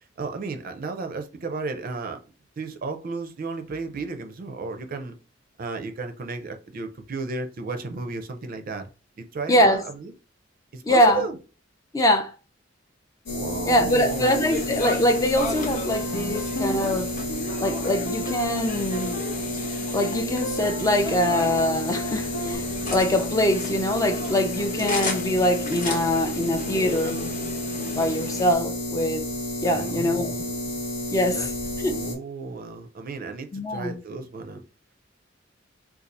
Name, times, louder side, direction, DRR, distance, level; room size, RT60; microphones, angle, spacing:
voice 1, 0.2-2.2 2.6-5.2 5.6-8.9 9.2-10.1 10.7-11.4 13.3-14.5 29.6-30.7 31.3-31.5 31.8-34.6, right 3 dB, 50° right, 0.5 m, -34 dB
voice 2, 9.5-9.8 10.8-11.2 11.9-12.3 13.7-17.1 17.6-19.2 19.9-27.2 27.9-29.2 29.6-30.3 31.1-31.5 31.8-31.9 33.5-33.9, left 1 dB, 20° left, 0.4 m, -23 dB
sound 1, 13.3-32.2, left 1 dB, 65° left, 1.0 m, -31 dB
sound 2, 13.9-28.6, left 2 dB, 45° left, 0.8 m, -35 dB
sound 3, 14.2-15.5 15.9-22.6, equal, 85° left, 0.7 m, -37 dB
2.6 x 2.4 x 4.0 m
head